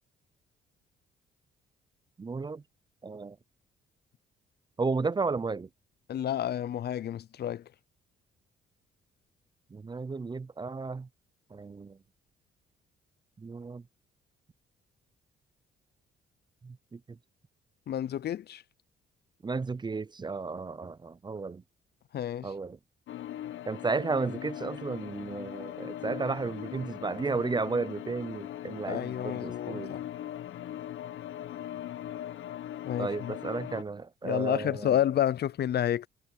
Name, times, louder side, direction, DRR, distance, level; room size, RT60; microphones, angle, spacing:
voice 1, 2.2-2.6 3.0-3.4 4.8-5.7 9.7-11.1 11.5-12.0 13.4-13.8 16.6-17.0 19.4-21.6 22.4-22.8 23.7-30.0 33.0-35.0, right 4 dB, 20° right, 0.5 m, -33 dB
voice 2, 6.1-7.7 17.9-18.6 22.1-22.5 28.9-30.0 32.8-33.3 34.2-36.1, left 11 dB, 55° left, 0.5 m, -30 dB
sound 1, 23.1-33.8, left 12 dB, 75° left, 1.0 m, -40 dB
cardioid pair, 90°, 20 cm